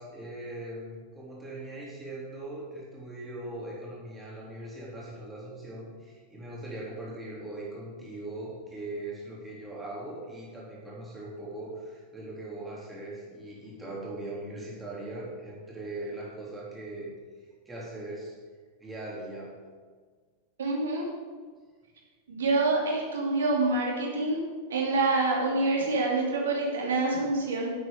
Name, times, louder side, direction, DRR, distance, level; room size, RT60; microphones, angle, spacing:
voice 1, 0.0-18.4 18.8-19.6, right 2 dB, 10° right, -5 dB, 3.6 m, -40 dB
voice 2, 20.6-21.0 22.3-24.4 24.7-27.7, right 3 dB, 65° right, -2 dB, 3.0 m, -26 dB
10.0 x 8.2 x 5.3 m, 1.6 s
figure-of-eight pair, 90°, 0 cm